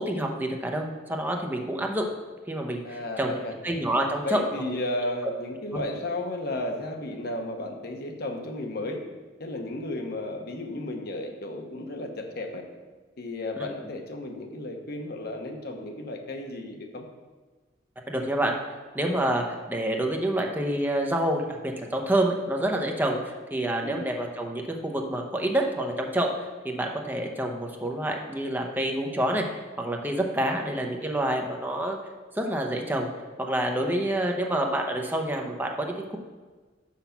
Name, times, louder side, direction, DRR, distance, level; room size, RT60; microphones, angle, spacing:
voice 1, 0.0-2.1 2.5-3.3 3.6-4.8 5.7-5.8 13.6-13.7 18.1-18.6 18.9-26.3 26.6-32.0 32.3-33.1 33.4-36.2, right 1 dB, 10° right, 2 dB, 0.8 m, -28 dB
voice 2, 2.8-3.5 4.2-9.0 9.4-12.7 13.2-17.0 23.8-24.1 30.5-30.7 33.8-34.0, left 1 dB, 60° left, 4 dB, 0.9 m, -34 dB
6.0 x 5.6 x 5.7 m, 1.3 s
head